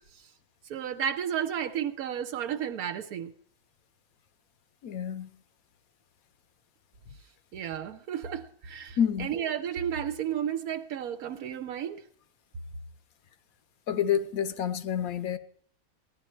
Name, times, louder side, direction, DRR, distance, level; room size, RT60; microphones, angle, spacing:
voice 1, 0.7-3.3 7.5-12.0, right 9 dB, 85° right, 1.2 m, -32 dB
voice 2, 4.8-5.3 9.0-9.3 13.9-15.4, left 8 dB, 80° left, 1.2 m, -28 dB
16.0 x 10.5 x 4.3 m
omnidirectional pair, 1.5 m